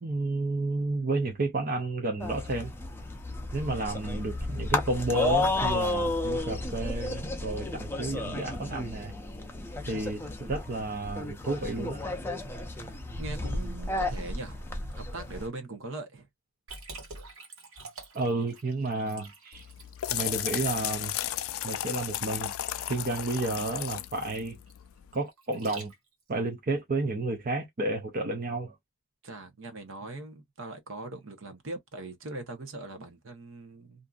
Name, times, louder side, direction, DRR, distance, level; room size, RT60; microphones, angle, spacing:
voice 1, 0.0-2.7 3.5-9.2 9.8-12.0 18.1-19.6 20.1-21.2 21.6-22.5 22.9-24.6 25.1-25.9 26.3-28.8, right 2 dB, 40° right, 0.5 m, -31 dB
sound 1, 2.2-15.5, left 2 dB, 10° left, 0.5 m, -32 dB
voice 2, 12.7-16.3 29.2-34.1, right 2 dB, 60° right, 0.9 m, -41 dB
Liquid, 16.7-26.3, right 3 dB, 75° right, 1.5 m, -49 dB
sound 2, 19.5-25.1, left 12 dB, 70° left, 0.3 m, -34 dB
2.7 x 2.5 x 2.3 m
head